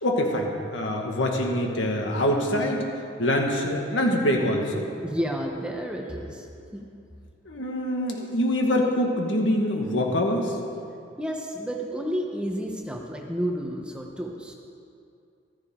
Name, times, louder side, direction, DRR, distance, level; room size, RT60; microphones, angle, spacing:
voice 1, 0.0-2.8 3.2-4.9 7.5-10.6, left 1 dB, 80° left, 1 dB, 1.8 m, -24 dB
voice 2, 5.0-6.5 6.7-6.8 11.2-14.5, equal, 5° right, 0 dB, 1.0 m, -31 dB
14.5 x 13.0 x 3.8 m, 2.5 s
head